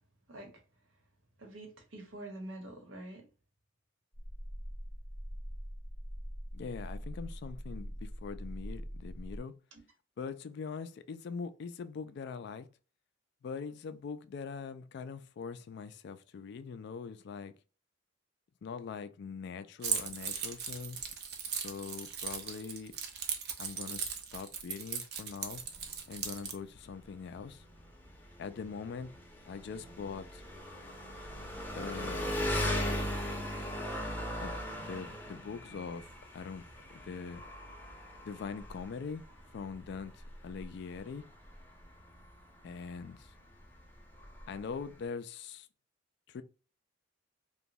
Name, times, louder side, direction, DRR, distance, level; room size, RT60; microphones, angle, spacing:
voice 1, 0.3-0.6 1.4-3.3 9.7-9.8, right 1 dB, 85° right, 1.1 m, -46 dB
sound 1, 4.1-9.4, equal, 25° right, 0.8 m, -43 dB
voice 2, 6.5-9.5 10.2-12.7 13.4-17.5 18.6-21.0 21.5-22.9 23.6-25.6 26.1-27.6 28.4-29.1 29.5-30.4 31.7-32.4 34.4-36.6 36.9-37.4 38.2-39.2 39.5-41.2 42.6-43.3 44.5-45.7 46.3-46.4, left 5 dB, 60° left, 0.3 m, -42 dB
Keys jangling, 19.8-26.6, right 7 dB, 55° right, 0.6 m, -38 dB
Engine, 25.6-45.1, equal, 10° left, 0.6 m, -39 dB
2.9 x 2.2 x 2.6 m
head